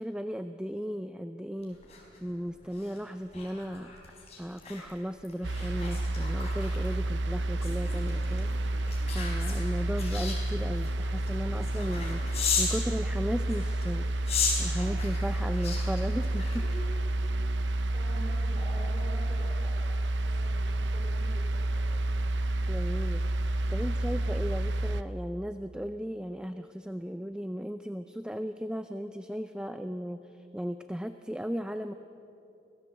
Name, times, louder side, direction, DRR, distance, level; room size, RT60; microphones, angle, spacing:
voice 1, 0.0-1.8 2.2-4.0 4.4-8.5 9.1-14.1 14.6-16.7 22.7-23.3 23.7-31.9, equal, 5° right, 9 dB, 0.4 m, -36 dB
sound 1, 1.6-12.8 13.4-17.0 17.5-17.7, left 5 dB, 35° left, 4.6 m, -37 dB
sound 2, 5.4-25.0, right 1 dB, 70° right, 0.7 m, -30 dB
voice 2, 17.9-22.0, equal, 25° right, -6 dB, 4.7 m, -46 dB
25.0 x 17.0 x 7.8 m, 2.8 s
head